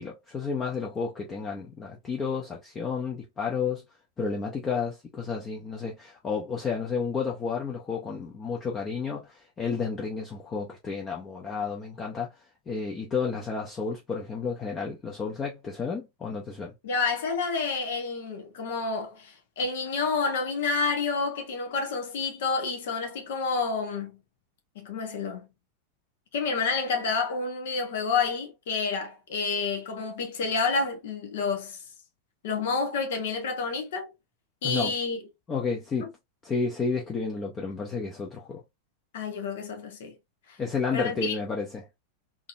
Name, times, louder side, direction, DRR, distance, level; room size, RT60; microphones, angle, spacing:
voice 1, 0.0-3.8 4.2-16.7 34.6-34.9 35.5-36.1 36.4-38.6 40.6-41.8, left 5 dB, 20° left, 0.8 m, -31 dB
voice 2, 16.8-24.2 24.7-25.5 26.3-31.8 32.4-34.1 34.6-35.2 36.0-36.1 39.1-40.2 40.5-40.6 40.9-41.3, left 4 dB, 55° left, 1.1 m, -29 dB
3.8 x 2.9 x 2.5 m
figure-of-eight pair, 90°, 0 cm